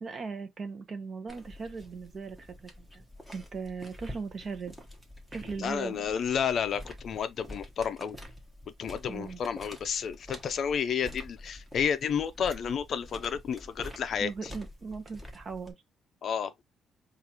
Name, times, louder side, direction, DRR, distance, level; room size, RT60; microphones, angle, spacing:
voice 1, 0.0-3.0 3.3-4.8 5.3-6.1 9.1-9.4 14.2-15.8, right 4 dB, 35° right, 0.7 m, -39 dB
sound 1, 1.3-15.7, left 1 dB, 5° right, 1.0 m, -47 dB
voice 2, 5.6-8.2 8.8-14.3 16.2-16.5, left 7 dB, 50° left, 0.4 m, -31 dB
4.7 x 2.4 x 2.9 m
cardioid pair, 150°, 0 cm